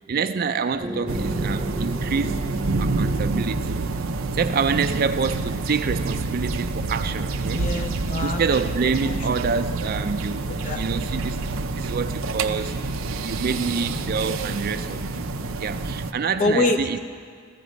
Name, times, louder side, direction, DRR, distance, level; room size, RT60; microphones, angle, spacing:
voice 1, 0.0-2.4 2.8-3.9 4.3-7.6 8.2-11.4 11.7-15.3 15.6-17.0, right 5 dB, 45° right, 10 dB, 0.4 m, -27 dB
sound 1, 0.7-15.7, left 1 dB, 60° left, 4.1 m, -41 dB
sound 2, 0.8-5.4, right 1 dB, 20° right, 0.8 m, -34 dB
sound 3, 1.1-16.1, right 3 dB, 85° right, 0.6 m, -28 dB
voice 2, 7.6-8.4 9.0-9.2 10.5-10.9 16.4-17.0, left 2 dB, 40° left, 6 dB, 0.4 m, -25 dB
15.5 x 14.5 x 5.2 m, 2.1 s
head